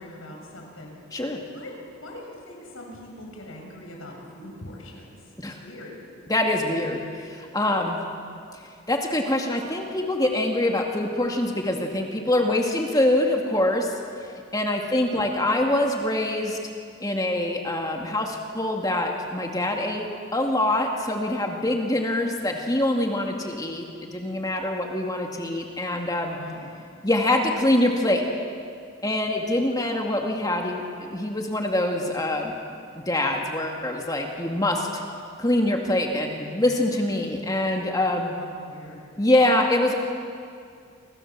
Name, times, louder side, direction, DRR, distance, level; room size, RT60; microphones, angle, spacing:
voice 1, 0.0-1.0 1.5-5.2 5.6-5.9 26.3-26.8 38.3-39.0, left 1 dB, 70° left, 0 dB, 7.3 m, -42 dB
voice 2, 6.3-8.0 8.9-13.9 14.5-16.6 17.0-23.9 24.1-26.4 27.0-28.2 29.0-32.5 32.9-35.0 35.4-38.4 39.2-39.9, left 1 dB, 15° left, 1 dB, 2.2 m, -24 dB
29.5 x 25.5 x 7.5 m, 2.3 s
head